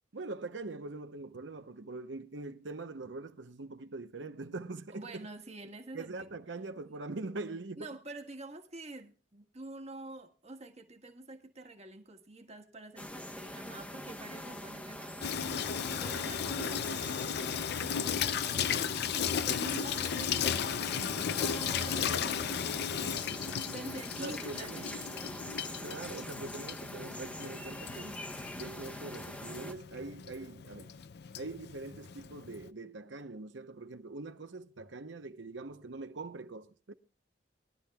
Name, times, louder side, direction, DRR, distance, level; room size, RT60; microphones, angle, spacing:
voice 1, 0.1-5.3 5.9-7.9 15.8-16.2 16.6-17.1 24.2-24.9 25.8-28.3 28.5-30.9 31.4-36.9, right 3 dB, 70° right, 0.9 m, -43 dB
voice 2, 4.9-6.1 6.8-7.0 7.8-18.9 19.4-23.1 23.7-25.4, right 2 dB, 35° right, 1.5 m, -47 dB
sound 1, 13.0-29.7, left 1 dB, 5° left, 1.0 m, -44 dB
Water tap faucet / Sink (filling or washing), 15.2-32.7, left 8 dB, 60° left, 0.5 m, -35 dB
22.0 x 11.5 x 2.3 m
head